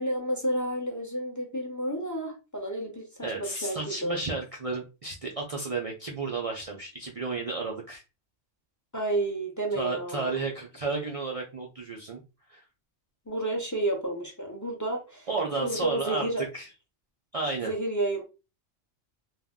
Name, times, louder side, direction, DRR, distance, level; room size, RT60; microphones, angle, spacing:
voice 1, 0.0-4.2 8.9-10.4 13.3-15.3 15.6-16.4 17.6-18.2, right 1 dB, 25° left, 0.4 m, -31 dB
voice 2, 3.2-8.0 9.8-12.2 12.5-12.6 15.3-16.7 17.3-17.7, right 3 dB, 60° right, 0.3 m, -32 dB
2.5 x 2.1 x 3.5 m
omnidirectional pair, 1.2 m